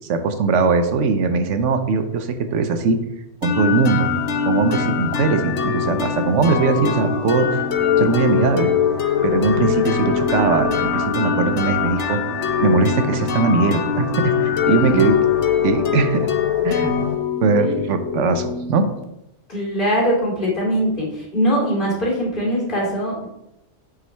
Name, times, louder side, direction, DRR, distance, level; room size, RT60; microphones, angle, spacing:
voice 1, 0.1-3.0 3.4-4.1 4.5-7.7 8.0-8.7 9.2-12.2 12.6-15.1 15.6-16.3 16.6-16.9 17.4-18.9, right 4 dB, 80° right, 8 dB, 1.0 m, -20 dB
soft etheral background music, 3.4-19.0, left 7 dB, 70° left, 1.0 m, -22 dB
voice 2, 19.5-21.1 21.3-23.3, equal, 45° left, -4 dB, 2.6 m, -21 dB
7.5 x 5.9 x 3.3 m, 0.86 s
omnidirectional pair, 1.2 m